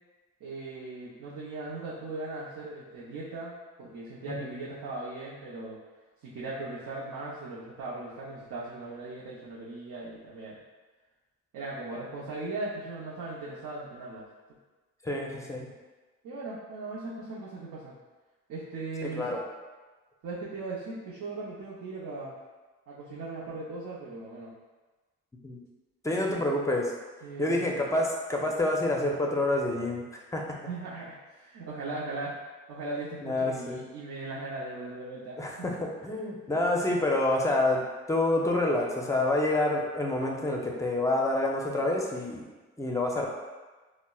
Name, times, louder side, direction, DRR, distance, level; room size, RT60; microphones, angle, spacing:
voice 1, 0.4-5.8 6.2-10.6 11.5-14.3 16.2-18.0 18.5-19.4 20.2-22.4 22.9-24.5 26.3-26.4 27.2-27.8 30.7-32.4 32.7-35.8, right 2 dB, 75° right, -8 dB, 0.7 m, -38 dB
voice 2, 15.0-15.7 19.1-19.4 25.4-25.6 26.0-26.9 27.4-30.0 30.3-30.6 33.2-33.8 35.4-37.8 38.1-42.5 42.8-43.3, left 2 dB, 10° left, 0 dB, 0.5 m, -27 dB
4.1 x 2.1 x 2.3 m, 1.3 s
cardioid pair, 90°, 30 cm